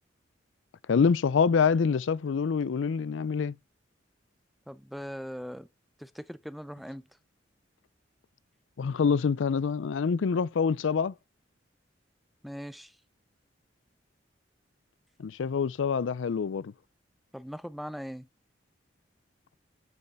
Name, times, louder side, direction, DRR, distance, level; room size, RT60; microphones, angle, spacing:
voice 1, 0.9-3.5 8.8-11.1 15.2-16.7, left 5 dB, 80° left, 0.4 m, -26 dB
voice 2, 4.7-5.7 6.0-7.1 12.4-13.0 17.3-18.3, equal, ahead, 0.4 m, -40 dB
10.5 x 5.5 x 5.9 m
head